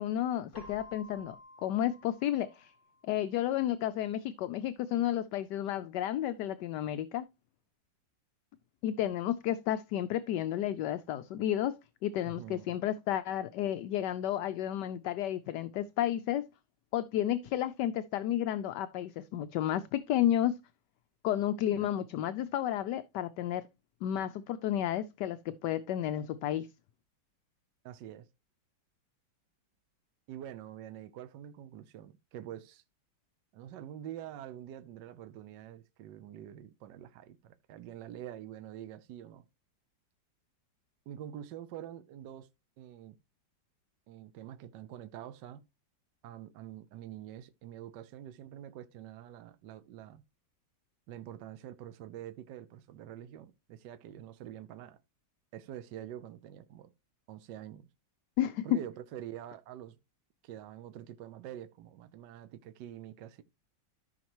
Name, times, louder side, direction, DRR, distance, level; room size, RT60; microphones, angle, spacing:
voice 1, 0.0-1.4 1.6-2.7 3.1-7.3 8.8-16.4 16.9-20.6 21.2-23.6 24.0-26.7 58.4-58.7, left 11 dB, 75° left, 1.1 m, -32 dB
Keyboard (musical), 0.5-3.3, left 2 dB, 40° left, 2.2 m, -53 dB
voice 2, 12.3-12.8 21.7-21.9 27.8-28.3 30.3-32.8 33.5-39.4 41.1-42.5 42.8-43.2 44.1-45.6 46.2-50.2 51.1-55.0 55.5-56.9 57.3-57.9 58.6-60.0 60.4-63.4, right 11 dB, 75° right, 1.3 m, -46 dB
13.5 x 5.8 x 3.0 m
omnidirectional pair, 2.0 m